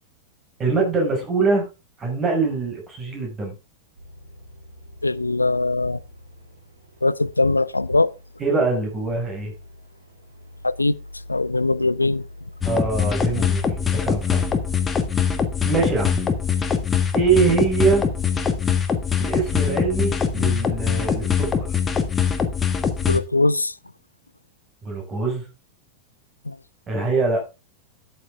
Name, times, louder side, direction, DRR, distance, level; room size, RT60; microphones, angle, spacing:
voice 1, 0.6-1.6 2.0-3.6 8.4-9.5 12.6-14.4 15.6-16.2 17.1-18.0 19.2-21.7 24.8-25.4 26.9-27.4, right 4 dB, 25° right, 5.6 m, -23 dB
sound 1, 4.0-22.0, left 1 dB, 75° right, 4.0 m, -43 dB
voice 2, 5.0-6.0 7.0-8.1 10.6-10.9 11.3-12.2 23.1-23.7 26.5-26.6, left 2 dB, 80° left, 0.5 m, -21 dB
sound 2, 12.6-23.2, left 7 dB, 20° left, 1.5 m, -23 dB
12.5 x 8.8 x 3.6 m
figure-of-eight pair, 90°, 0 cm